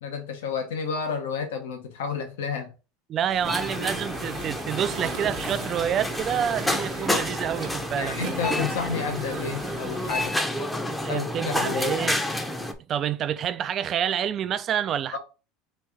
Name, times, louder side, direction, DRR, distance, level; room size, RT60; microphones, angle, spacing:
voice 1, 0.0-2.7 7.9-10.4 11.1-12.0 15.1-15.2, left 5 dB, 80° left, 0.8 m, -31 dB
voice 2, 3.1-8.1 11.0-12.2 12.9-15.2, right 9 dB, 45° right, 0.3 m, -28 dB
sound 1, 3.3-10.3, right 7 dB, 65° right, 0.7 m, -39 dB
sound 2, 3.4-12.7, left 1 dB, 10° left, 0.6 m, -29 dB
3.1 x 2.6 x 3.4 m
hypercardioid pair, 85°, 0 cm